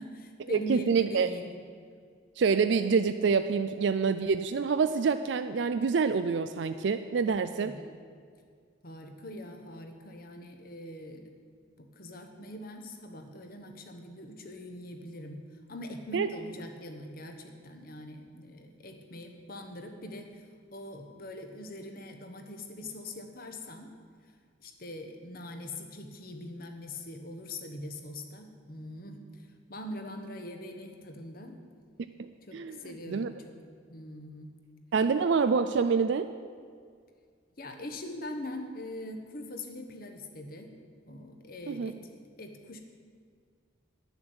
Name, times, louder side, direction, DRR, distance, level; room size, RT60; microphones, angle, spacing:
voice 1, 0.0-1.6 7.5-8.0 8.8-11.2 11.8-15.4 15.7-20.4 20.7-23.9 24.6-29.4 29.7-31.6 32.4-33.6 33.9-34.5 37.6-40.7 41.0-42.1 42.4-42.8, left 1 dB, 50° left, 5 dB, 1.1 m, -42 dB
voice 2, 0.5-1.3 2.4-7.7 16.1-16.3 32.2-32.8 33.1-33.3 34.9-36.3 41.7-41.9, right 5 dB, 65° right, 10 dB, 0.4 m, -26 dB
10.5 x 7.1 x 7.9 m, 2.1 s
head